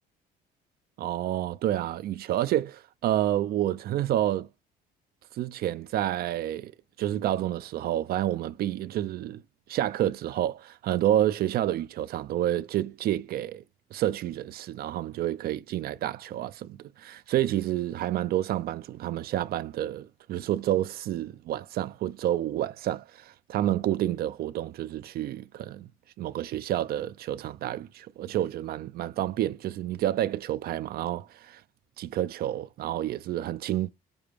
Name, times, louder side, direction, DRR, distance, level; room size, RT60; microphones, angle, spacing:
voice 1, 1.0-4.5 5.3-6.7 7.0-9.4 9.7-13.6 13.9-25.9 26.2-31.6 32.0-33.9, right 12 dB, 65° right, 0.6 m, -29 dB
6.9 x 4.4 x 3.5 m
cardioid pair, 110°, 17 cm